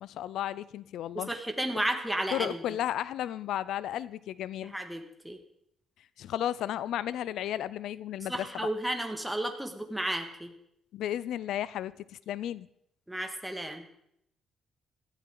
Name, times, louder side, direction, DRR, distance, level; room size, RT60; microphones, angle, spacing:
voice 1, 0.0-1.3 2.3-4.7 6.2-8.7 10.9-12.7, left 11 dB, 80° left, 18 dB, 0.4 m, -34 dB
voice 2, 1.1-2.6 4.6-5.4 8.3-10.5 13.1-13.8, right 1 dB, 5° right, 4 dB, 1.8 m, -33 dB
17.0 x 13.0 x 3.9 m, 0.75 s
cardioid pair, 115°, 0 cm